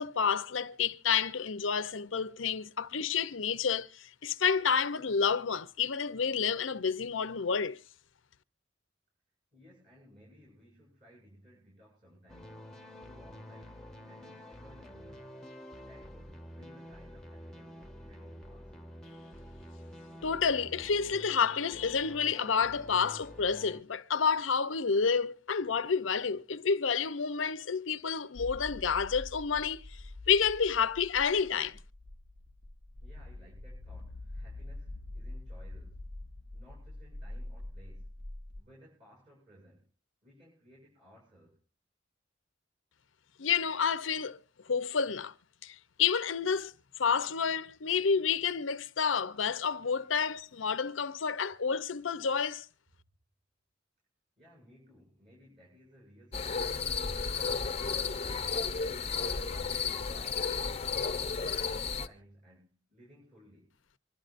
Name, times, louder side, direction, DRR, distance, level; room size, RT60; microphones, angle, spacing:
voice 1, 0.0-7.8 20.2-30.0 30.3-31.8 43.4-44.4 44.7-45.3 45.6-46.7 47.0-52.7, left 6 dB, 85° left, 0.7 m, -29 dB
voice 2, 9.5-12.6 13.0-15.4 15.8-18.7 33.0-36.1 36.5-38.2 38.5-39.9 40.2-41.6 54.4-56.9 57.2-58.1 58.8-63.8, equal, 30° right, 7.9 m, -59 dB
sound 1, 12.3-23.8, equal, 5° left, 1.3 m, -49 dB
sound 2, 28.4-38.6, left 2 dB, 85° right, 2.2 m, -45 dB
sound 3, 56.3-62.1, left 5 dB, 30° left, 0.8 m, -33 dB
24.5 x 12.5 x 2.6 m
head